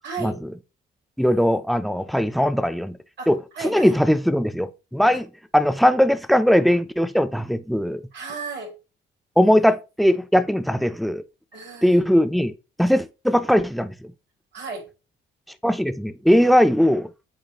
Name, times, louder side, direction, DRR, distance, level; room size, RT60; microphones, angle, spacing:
voice 1, 0.0-0.4 3.2-3.3 3.5-4.0 5.1-5.2 8.1-8.8 11.5-12.0 14.5-14.9, right 4 dB, 65° right, 3.8 m, -34 dB
voice 2, 1.2-3.0 3.3-5.3 5.5-8.0 9.4-11.2 11.8-12.5 12.8-14.1 15.6-17.1, equal, ahead, 0.6 m, -19 dB
8.7 x 3.7 x 3.0 m
cardioid pair, 90°, 20 cm